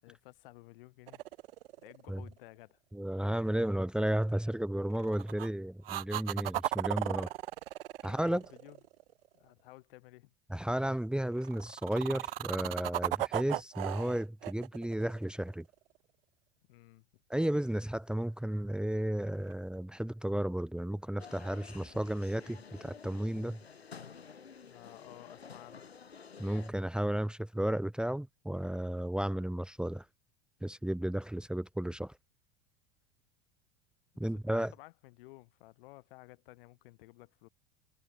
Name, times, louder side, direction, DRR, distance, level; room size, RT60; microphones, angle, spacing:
voice 1, 0.0-1.2 1.8-2.8 7.1-7.3 8.1-8.8 9.3-10.3 16.7-17.1 24.6-25.8 34.3-37.5, left 21 dB, 60° left, 7.8 m, -54 dB
sound 1, 1.1-2.3 4.9-5.5 5.8-9.1 11.4-15.7 19.5-19.6, right 15 dB, 70° right, 1.6 m, -36 dB
voice 2, 2.9-7.3 8.0-8.4 10.5-15.7 17.3-23.6 26.4-30.1 30.6-32.1 34.2-34.7, right 1 dB, 5° right, 1.8 m, -33 dB
sound 2, 21.2-26.7, left 6 dB, 90° left, 2.6 m, -51 dB
hypercardioid pair, 85°, 30 cm